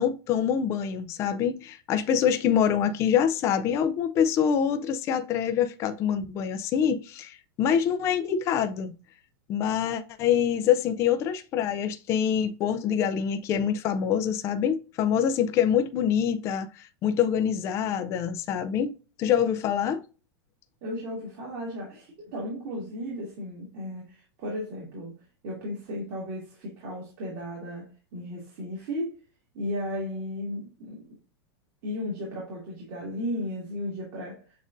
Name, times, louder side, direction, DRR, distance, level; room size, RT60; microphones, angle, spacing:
voice 1, 0.0-8.9 9.5-18.9 19.2-20.0, left 8 dB, 20° left, 0.3 m, -25 dB
voice 2, 20.8-29.2 29.5-31.2 31.8-34.5, left 1 dB, 40° right, 1.9 m, -35 dB
7.1 x 2.5 x 2.5 m
supercardioid pair, 160°, 13 cm